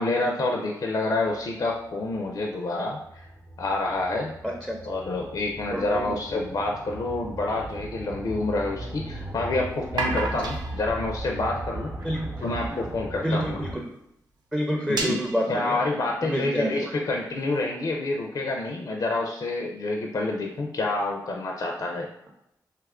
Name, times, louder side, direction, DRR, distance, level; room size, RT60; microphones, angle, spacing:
voice 1, 0.0-3.2 3.6-4.3 4.9-11.9 12.4-13.6 14.9-15.2 15.5-22.1, left 2 dB, 60° left, 1 dB, 0.4 m, -28 dB
sound 1, 1.3-13.8, right 1 dB, 55° right, 0.7 m, -38 dB
voice 2, 4.4-4.8 5.7-6.2 10.2-10.3 12.0-12.3 13.2-13.9 14.5-15.8 16.2-17.0, equal, 5° right, 1 dB, 0.4 m, -28 dB
sound 2, 6.8-8.4 9.8-12.6 13.3-13.4 13.7-13.9 14.2-14.3 14.7-16.2, right 3 dB, 85° right, 0.5 m, -35 dB
2.8 x 2.4 x 3.5 m, 0.81 s
cardioid pair, 55°, 7 cm